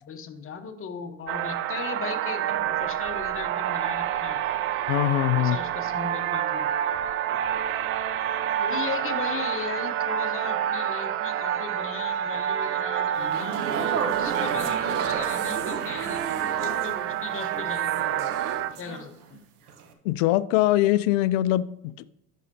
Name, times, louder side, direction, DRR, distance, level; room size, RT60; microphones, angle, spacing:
voice 1, 0.0-4.4 5.3-6.7 8.6-13.6 14.0-18.3 18.8-19.4, left 7 dB, 30° left, 1.1 m, -37 dB
sound 1, 1.3-18.7, right 10 dB, 30° right, 0.4 m, -28 dB
voice 2, 4.9-5.6 20.0-22.0, left 15 dB, 55° left, 0.5 m, -22 dB
sound 2, 13.1-19.4 19.7-19.9, right 5 dB, 75° right, 1.2 m, -34 dB
10.5 x 6.4 x 2.8 m
hypercardioid pair, 90°, 46 cm